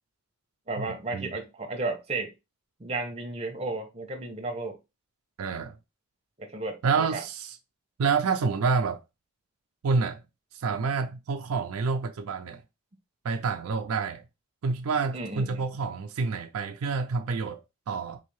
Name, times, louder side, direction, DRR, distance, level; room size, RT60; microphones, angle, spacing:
voice 1, 0.7-2.3 2.8-4.8 6.4-7.2 15.1-15.6, right 3 dB, 30° right, 0.9 m, -33 dB
voice 2, 5.4-5.8 6.8-7.6 8.0-9.0 9.8-10.2 10.5-12.6 13.2-14.2 14.6-18.2, right 5 dB, 80° right, 0.4 m, -28 dB
4.0 x 2.7 x 3.1 m
head